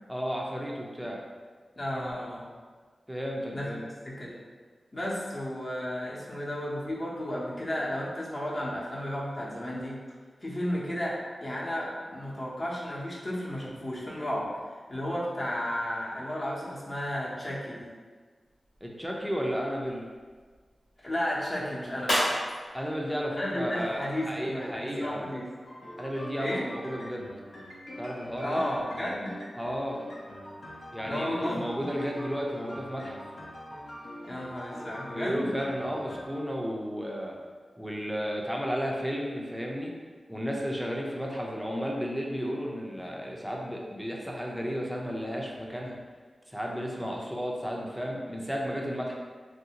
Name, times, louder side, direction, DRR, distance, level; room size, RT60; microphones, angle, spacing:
voice 1, 0.1-1.2 3.1-3.8 18.8-20.0 22.7-25.4 26.0-27.3 28.0-28.6 29.6-30.0 30.9-33.2 35.1-37.3 37.8-39.9 40.3-46.0 46.5-49.1, equal, 5° right, -2 dB, 0.5 m, -33 dB
voice 2, 1.8-2.4 3.5-4.4 4.9-10.0 10.4-14.5 14.9-17.9 21.0-22.3 23.4-25.4 26.4-26.7 28.4-29.3 31.0-31.6 34.3-35.5 47.0-47.1, left 1 dB, 35° left, -6 dB, 0.8 m, -33 dB
sound 1, 18.4-24.4, equal, 85° left, 1.1 m, -36 dB
sound 2, 25.6-36.2, equal, 70° left, 0.6 m, -44 dB
3.2 x 2.6 x 2.8 m, 1.5 s
wide cardioid pair, 85°, 0 cm